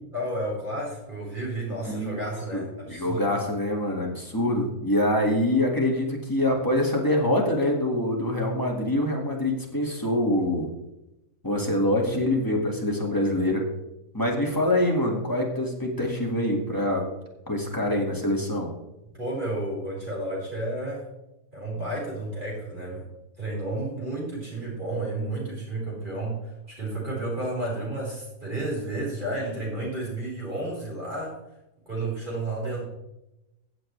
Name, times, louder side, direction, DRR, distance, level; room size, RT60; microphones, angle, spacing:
voice 1, 0.1-3.4 19.1-21.1 21.5-23.1 23.4-31.4 31.9-32.9, right 2 dB, 35° right, -5 dB, 4.8 m, -32 dB
voice 2, 1.9-2.2 2.5-2.6 2.9-10.7 11.4-13.6 14.1-17.0 17.5-18.7, left 1 dB, 15° left, -1 dB, 1.9 m, -25 dB
16.0 x 7.6 x 3.3 m, 0.92 s
omnidirectional pair, 1.6 m